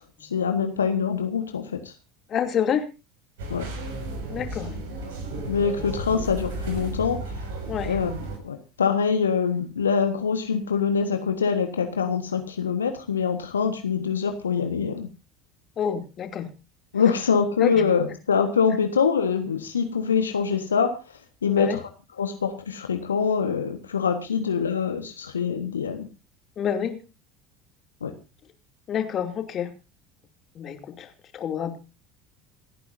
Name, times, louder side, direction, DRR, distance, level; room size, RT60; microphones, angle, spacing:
voice 1, 0.0-1.9 3.5-3.7 5.5-7.3 7.8-8.1 8.4-15.1 16.9-21.0 21.4-21.8 22.2-26.1 28.0-28.1, left 6 dB, 80° left, 7 dB, 1.4 m, -24 dB
voice 2, 2.3-2.9 4.3-4.8 7.7-8.0 15.8-16.5 17.6-17.9 21.4-21.8 26.6-27.0 28.9-29.7 30.5-31.8, left 8 dB, 40° left, 6 dB, 2.8 m, -28 dB
sound 1, 3.4-8.4, right 2 dB, 65° right, 5.9 m, -33 dB
28.0 x 10.0 x 2.7 m, 0.30 s
figure-of-eight pair, 70°, 0 cm